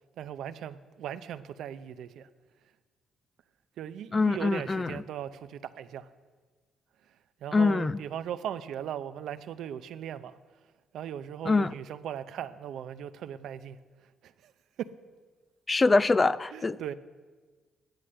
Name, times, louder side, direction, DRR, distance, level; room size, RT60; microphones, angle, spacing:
voice 1, 0.2-2.3 3.8-6.1 7.4-10.4 10.9-13.8 14.2-14.5 14.8-14.9 16.5-16.9, right 10 dB, 75° right, 0.6 m, -38 dB
voice 2, 4.1-5.0 7.5-8.0 11.5-11.7 15.7-16.8, left 3 dB, 25° left, 0.4 m, -24 dB
11.0 x 10.5 x 7.7 m
cardioid pair, 90°, 0 cm